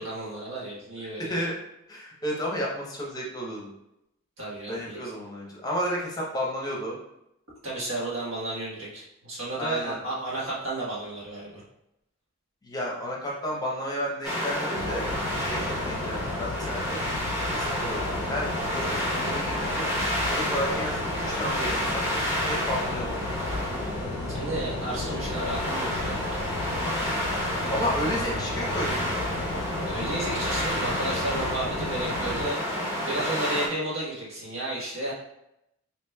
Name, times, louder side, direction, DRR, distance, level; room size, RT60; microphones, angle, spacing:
voice 1, 0.0-1.4 4.4-5.0 7.6-11.6 24.3-26.4 29.9-35.1, right 2 dB, 75° right, -7 dB, 1.4 m, -33 dB
voice 2, 1.2-1.5 1.9-3.7 4.7-7.0 9.6-10.0 12.6-15.1 15.4-17.0 17.5-22.0 22.3-23.2 27.7-29.1, equal, 20° left, -3 dB, 0.7 m, -32 dB
sound 1, 14.2-33.7, equal, 10° right, 0.9 m, -30 dB
sound 2, 14.8-32.5, left 3 dB, 80° left, 0.4 m, -35 dB
4.9 x 2.9 x 2.3 m, 0.84 s
head